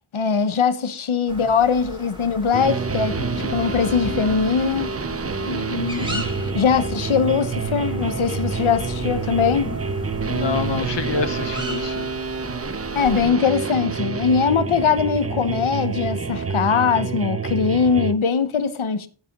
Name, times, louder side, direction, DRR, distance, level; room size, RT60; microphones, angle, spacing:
voice 1, 0.1-4.9 6.5-9.7 12.9-19.1, left 6 dB, 80° left, 0.9 m, -21 dB
sound 1, 1.3-13.2, equal, 10° right, 2.2 m, -38 dB
sound 2, 2.5-18.1, right 5 dB, 30° right, 0.5 m, -28 dB
sound 3, 2.9-16.7, left 3 dB, 40° left, 1.3 m, -37 dB
voice 2, 5.4-6.2 10.2-12.1, left 4 dB, 60° left, 1.1 m, -27 dB
7.6 x 7.5 x 5.2 m
wide cardioid pair, 65°, 48 cm